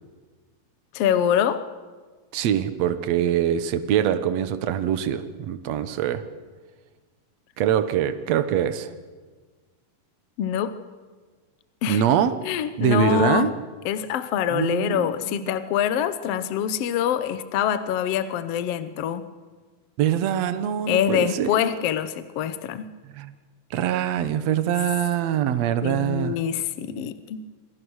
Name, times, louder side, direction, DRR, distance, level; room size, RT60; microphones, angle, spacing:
voice 1, 0.9-1.6 10.4-10.8 11.8-12.0 12.4-13.5 13.8-19.2 20.9-22.9 25.8-27.4, left 9 dB, 80° left, 12 dB, 1.4 m, -25 dB
voice 2, 2.3-6.3 7.6-8.9 11.9-12.3 12.8-13.5 14.5-15.6 20.0-21.6 23.1-23.3 23.7-26.4, right 10 dB, 65° right, 11 dB, 1.8 m, -24 dB
26.5 x 24.0 x 6.4 m, 1.4 s
omnidirectional pair, 4.3 m